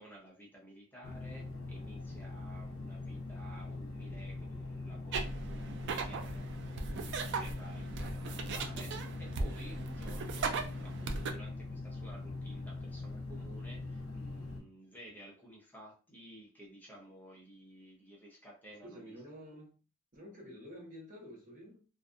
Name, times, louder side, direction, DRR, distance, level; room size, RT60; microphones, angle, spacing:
voice 1, 0.0-6.5 6.9-19.1, right 1 dB, 10° left, 0.7 m, -54 dB
sound 1, 1.0-14.6, left 2 dB, 75° left, 0.7 m, -42 dB
sound 2, 5.1-11.3, right 4 dB, 55° right, 0.4 m, -38 dB
voice 2, 18.8-19.8 20.1-21.9, equal, 40° right, 0.8 m, -50 dB
2.5 x 2.3 x 2.5 m
head